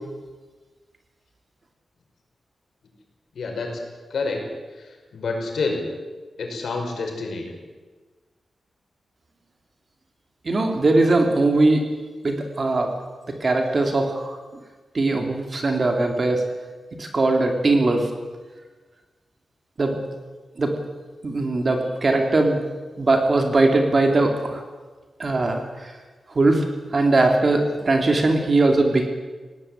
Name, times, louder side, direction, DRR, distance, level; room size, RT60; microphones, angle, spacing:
voice 1, 3.3-3.8 4.1-4.4 5.1-5.8 6.4-7.5, left 3 dB, 75° left, 2 dB, 5.4 m, -27 dB
voice 2, 10.4-11.9 12.2-12.9 13.4-14.4 14.9-16.4 17.0-18.1 19.8-20.0 20.6-20.7 21.2-22.6 23.0-24.6 25.2-25.9 26.3-26.6 26.9-29.1, right 2 dB, 35° right, 4 dB, 2.6 m, -20 dB
19.5 x 17.5 x 8.9 m, 1.4 s
wide cardioid pair, 150°, 0 cm